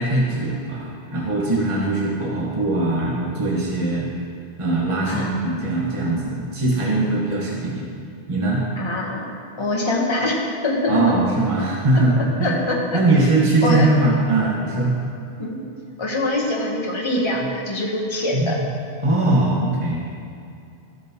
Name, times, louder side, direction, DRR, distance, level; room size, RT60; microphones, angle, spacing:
voice 1, 0.0-4.1 4.6-7.8 8.3-8.6 10.9-12.6 12.9-14.9 18.3-18.6 19.0-20.0, right 2 dB, 30° right, -4 dB, 1.3 m, -21 dB
voice 2, 5.1-5.7 8.8-9.3 9.6-10.4 10.6-11.0 11.9-12.0 12.4-13.0 13.6-13.9 15.4-15.6 16.0-18.6, left 1 dB, 25° left, -2 dB, 1.0 m, -24 dB
13.0 x 7.1 x 2.9 m, 2.6 s
omnidirectional pair, 1.2 m